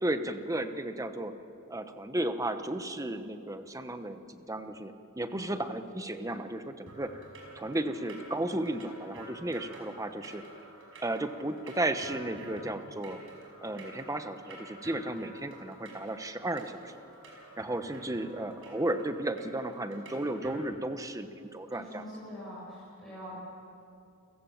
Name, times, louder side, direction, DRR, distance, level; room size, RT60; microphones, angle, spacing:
voice 1, 0.0-1.3 1.7-7.2 7.5-10.4 11.0-13.2 13.6-16.9 17.6-22.1, right 1 dB, 15° right, 9 dB, 1.0 m, -34 dB
voice 2, 5.3-5.7 21.7-23.4, equal, ahead, -10 dB, 7.2 m, -44 dB
sound 1, 6.9-20.6, right 2 dB, 65° right, 5.4 m, -50 dB
29.5 x 16.5 x 7.3 m, 2.7 s
head